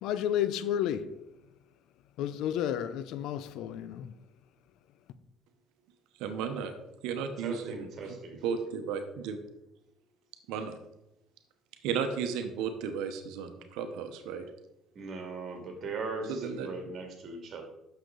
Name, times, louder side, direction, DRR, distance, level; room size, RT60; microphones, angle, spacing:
voice 1, 0.0-1.1 2.2-4.1, left 10 dB, 75° left, 0.6 m, -31 dB
voice 2, 6.2-6.7 7.0-9.4 10.5-10.8 11.8-14.5 16.3-16.7, right 6 dB, 85° right, 1.0 m, -34 dB
voice 3, 7.4-8.4 14.9-17.6, right 3 dB, 50° right, 2.4 m, -39 dB
9.1 x 6.7 x 3.9 m
cardioid pair, 100°, 0 cm